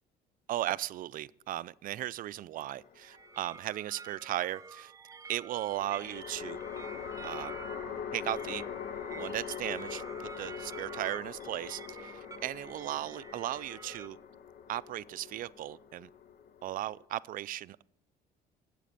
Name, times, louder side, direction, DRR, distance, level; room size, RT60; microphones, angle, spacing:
voice 1, 0.5-4.9 5.3-6.6 7.2-7.5 8.1-8.6 9.1-14.2 14.7-16.1 16.6-17.8, right 14 dB, 55° right, 0.4 m, -36 dB
sound 1, 2.6-3.4 5.7-17.1, left 8 dB, 60° left, 0.9 m, -43 dB
sound 2, 3.0-14.1, right 4 dB, 20° right, 0.6 m, -49 dB
9.2 x 7.5 x 8.8 m
cardioid pair, 110°, 17 cm